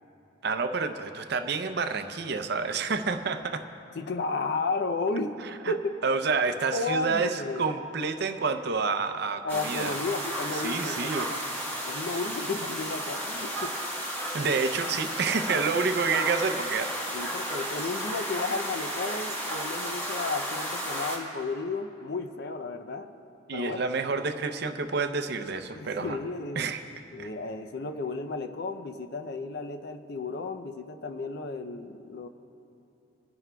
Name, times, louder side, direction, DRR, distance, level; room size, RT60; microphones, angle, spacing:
voice 1, 0.4-3.6 5.6-5.7 6.0-9.9 10.6-11.3 14.3-16.9 23.5-26.2 26.6-26.8 27.2-27.3, right 4 dB, 60° right, 8 dB, 0.6 m, -29 dB
voice 2, 4.0-5.4 5.7-6.0 6.7-7.7 9.4-11.4 11.9-13.8 17.1-23.1 23.5-23.8 25.7-26.6 27.1-32.3, left 3 dB, 60° left, 9 dB, 0.5 m, -33 dB
sound 1, 9.5-21.2, equal, 10° left, 1.4 m, -33 dB
23.0 x 11.0 x 2.3 m, 2.9 s
head